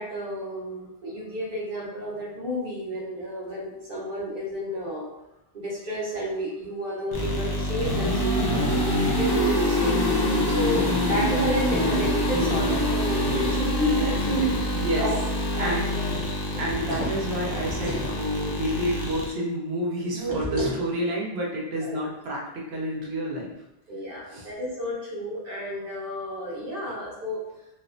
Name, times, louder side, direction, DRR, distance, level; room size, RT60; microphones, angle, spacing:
voice 1, 0.0-5.0 5.5-10.0 10.4-15.1 15.6-16.1 20.1-20.7 21.8-22.0 23.9-27.4, equal, 60° right, -5 dB, 1.2 m, -31 dB
sound 1, 7.1-19.3, left 1 dB, 35° left, 0.4 m, -25 dB
voice 2, 14.7-15.1 15.5-15.9 16.6-23.5 24.3-24.5, equal, 80° right, -2 dB, 0.9 m, -29 dB
sound 2, 16.5-18.2 20.3-20.9, equal, 35° right, 0.6 m, -33 dB
3.2 x 2.0 x 2.5 m, 0.90 s
omnidirectional pair, 1.0 m